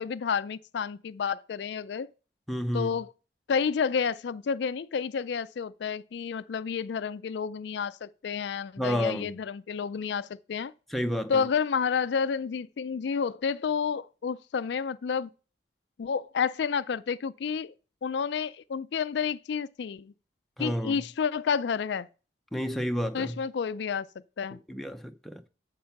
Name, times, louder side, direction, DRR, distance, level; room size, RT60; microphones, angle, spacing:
voice 1, 0.0-2.1 2.7-3.1 3.5-10.7 11.3-15.3 16.0-17.7 18.0-20.1 20.6-22.1 23.1-24.1 24.4-24.6, left 6 dB, 65° left, 0.4 m, -30 dB
voice 2, 2.5-3.0 8.8-9.3 10.9-11.5 20.6-21.0 22.5-23.4 24.7-25.4, equal, ahead, 0.6 m, -30 dB
8.6 x 6.7 x 5.7 m
head